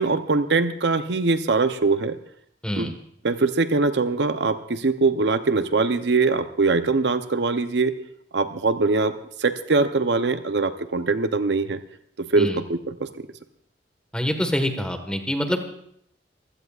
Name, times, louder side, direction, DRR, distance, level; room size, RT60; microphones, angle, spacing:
voice 1, 0.0-2.2 2.8-3.0 3.2-7.9 8.3-9.1 9.4-11.8 12.3-13.1, right 3 dB, 65° right, 10 dB, 0.7 m, -22 dB
voice 2, 14.1-15.6, equal, 5° left, 5 dB, 1.4 m, -25 dB
24.5 x 16.0 x 2.4 m, 0.69 s
head